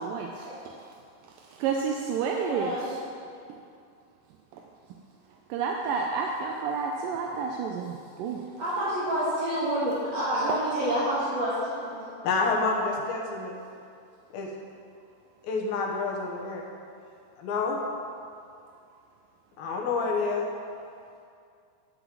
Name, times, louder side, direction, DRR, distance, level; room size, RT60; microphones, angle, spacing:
voice 1, 0.1-0.5 1.6-2.7 5.5-8.4, right 5 dB, 80° right, 1 dB, 2.2 m, -30 dB
voice 2, 2.3-2.9 8.6-12.3, right 1 dB, 50° right, -11 dB, 2.9 m, -28 dB
voice 3, 12.2-13.5 14.3-14.5 15.4-16.6 17.4-17.8 19.6-20.5, left 4 dB, 75° left, -1 dB, 2.9 m, -28 dB
12.0 x 5.5 x 7.5 m, 2.4 s
omnidirectional pair, 4.3 m